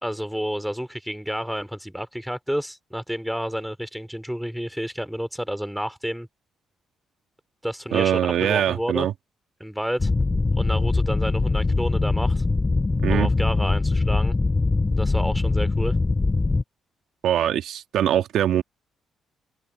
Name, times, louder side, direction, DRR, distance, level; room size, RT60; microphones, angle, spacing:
voice 1, 0.0-6.3 7.6-9.1 9.6-10.1 10.6-12.4 13.1-14.3 14.9-16.0, equal, ahead, 2.8 m, -30 dB
voice 2, 7.9-9.1 13.0-13.3 17.2-18.6, right 10 dB, 75° right, 1.7 m, -22 dB
sound 1, 10.0-16.6, left 3 dB, 25° left, 2.6 m, -22 dB
cardioid pair, 90°, 0 cm